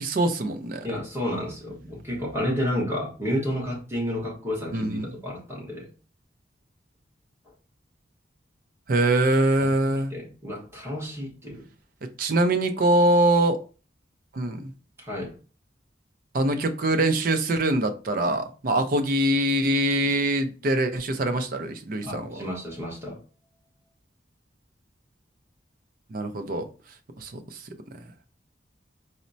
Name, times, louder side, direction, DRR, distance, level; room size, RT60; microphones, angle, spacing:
voice 1, 0.0-0.9 4.7-5.1 8.9-10.1 12.2-13.6 14.3-14.7 16.3-22.4 26.1-26.7 27.2-27.6, right 1 dB, 50° right, 0.5 m, -23 dB
voice 2, 0.8-5.9 9.6-11.6 15.0-15.3 22.0-23.2, equal, 15° right, 1.1 m, -31 dB
4.1 x 2.1 x 2.6 m
head